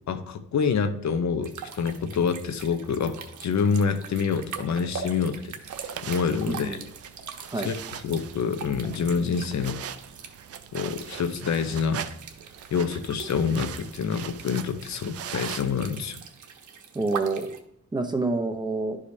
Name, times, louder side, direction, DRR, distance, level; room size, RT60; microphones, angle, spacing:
voice 1, 0.1-5.5 6.1-6.8 7.6-7.7 8.0-9.8 10.7-12.0 12.7-16.2, left 6 dB, 65° left, 9 dB, 0.8 m, -27 dB
sound 1, 1.4-17.6, right 6 dB, 75° right, 1.0 m, -42 dB
sound 2, 5.6-15.9, right 9 dB, 50° right, 0.5 m, -41 dB
voice 2, 6.5-6.8 7.5-7.7 16.9-17.5 17.9-19.0, right 3 dB, 15° right, 5 dB, 0.7 m, -27 dB
11.5 x 4.9 x 2.7 m, 0.74 s
wide cardioid pair, 125°, 30 cm